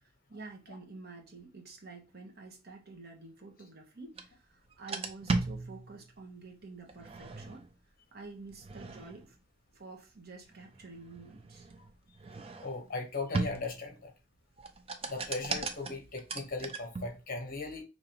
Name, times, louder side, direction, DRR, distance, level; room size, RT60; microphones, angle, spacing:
voice 1, 0.0-7.7 8.1-9.4 9.7-11.7, right 3 dB, 55° right, 1.1 m, -49 dB
sound 1, 4.1-4.3 4.7-6.2 6.9-7.7 8.5-9.3 10.5-12.9 13.3-14.0 14.6-17.2, right 3 dB, 30° right, 0.5 m, -37 dB
voice 2, 12.6-14.1 15.0-17.8, left 3 dB, 50° left, 1.1 m, -38 dB
5.0 x 3.0 x 2.9 m
head